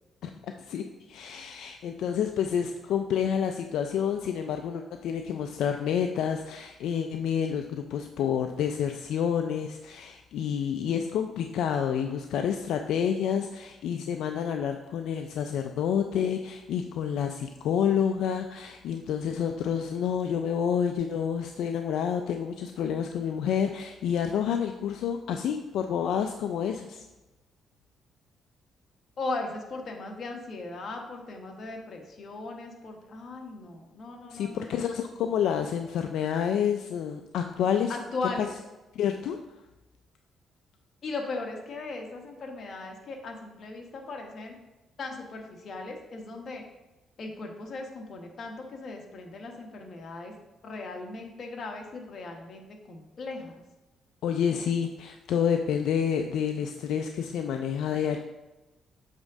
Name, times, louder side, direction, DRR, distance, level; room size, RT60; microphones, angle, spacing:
voice 1, 0.6-27.0 34.3-37.9 38.2-38.5 38.9-39.4 54.2-58.2, left 8 dB, 80° left, 5 dB, 0.4 m, -29 dB
voice 2, 29.2-34.7 37.9-38.5 41.0-44.5 45.0-46.6 47.2-50.3 50.6-53.5, left 3 dB, 50° left, 2 dB, 1.3 m, -38 dB
7.4 x 3.6 x 5.0 m, 1.0 s
cardioid pair, 90°, 0 cm